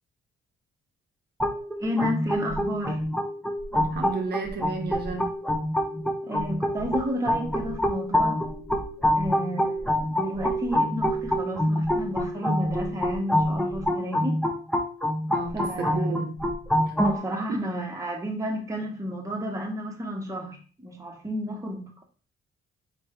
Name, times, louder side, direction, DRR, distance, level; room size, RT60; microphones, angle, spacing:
sound 1, 1.4-17.2, equal, ahead, 0.8 m, -26 dB
voice 1, 1.8-3.0 6.2-8.4 9.2-14.4 15.5-16.3 17.0-22.0, equal, 15° right, 1 dB, 1.2 m, -32 dB
voice 2, 3.7-5.3 15.3-16.3 17.5-17.6, right 3 dB, 55° right, 2 dB, 1.0 m, -32 dB
4.3 x 3.4 x 3.3 m, 0.39 s
cardioid pair, 90°, 20 cm